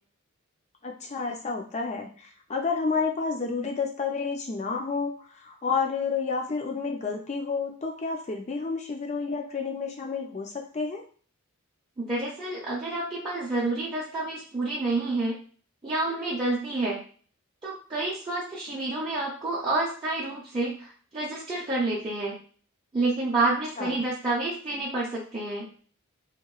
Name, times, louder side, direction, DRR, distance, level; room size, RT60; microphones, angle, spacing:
voice 1, 0.8-11.0 23.4-24.0, left 4 dB, 30° left, 2 dB, 0.4 m, -30 dB
voice 2, 12.0-15.4 15.8-17.0 17.6-22.4 22.9-25.7, right 2 dB, 20° right, -8 dB, 0.5 m, -29 dB
2.9 x 2.1 x 2.3 m, 0.43 s
head